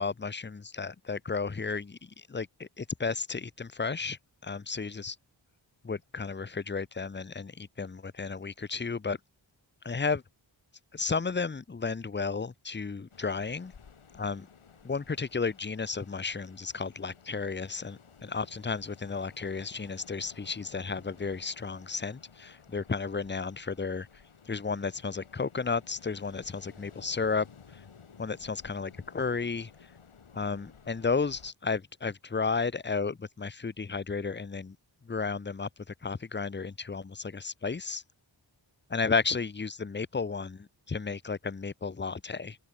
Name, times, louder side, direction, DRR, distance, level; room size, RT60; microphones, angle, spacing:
voice 1, 0.0-5.2 5.8-9.2 9.8-10.2 10.9-13.7 14.1-14.5 14.8-24.1 24.5-27.5 28.2-29.7 30.3-34.8 35.1-35.7 36.0-38.0 38.9-42.6, left 4 dB, 25° left, 0.7 m, -33 dB
Ocean, 13.1-31.5, left 6 dB, 90° left, 3.1 m, -55 dB
open air
wide cardioid pair, 75°, 48 cm